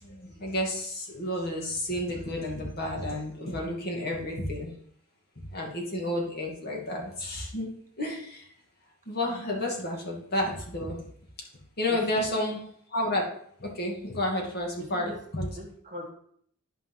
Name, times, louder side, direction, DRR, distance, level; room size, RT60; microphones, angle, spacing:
voice 1, 0.0-4.7 5.4-7.7 8.0-8.5 9.1-11.0 11.8-12.6 12.9-13.3 13.6-15.5, left 1 dB, 45° left, -1 dB, 2.2 m, -31 dB
voice 2, 11.9-12.3 14.8-15.2 15.5-16.1, left 1 dB, 35° right, 0 dB, 1.6 m, -41 dB
11.5 x 5.0 x 3.9 m, 0.64 s
head